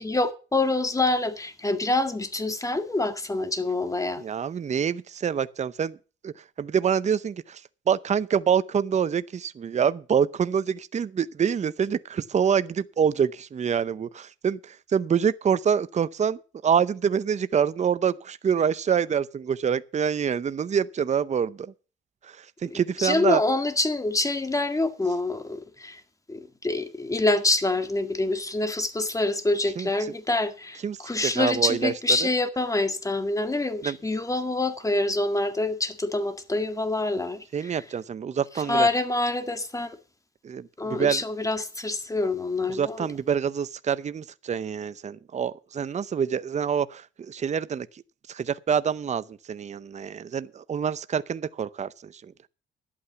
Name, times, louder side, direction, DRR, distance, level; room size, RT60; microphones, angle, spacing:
voice 1, 0.0-4.2 22.7-26.0 26.3-37.8 38.7-40.0 40.8-43.1, left 2 dB, 15° left, 1.9 m, -26 dB
voice 2, 4.2-6.0 6.2-7.6 7.9-21.7 22.2-23.4 29.8-29.9 30.8-31.9 33.8-34.0 37.5-38.9 40.4-41.2 42.7-47.9 48.3-52.2, right 7 dB, 35° right, 0.6 m, -26 dB
11.5 x 8.6 x 6.8 m
cardioid pair, 90°, 20 cm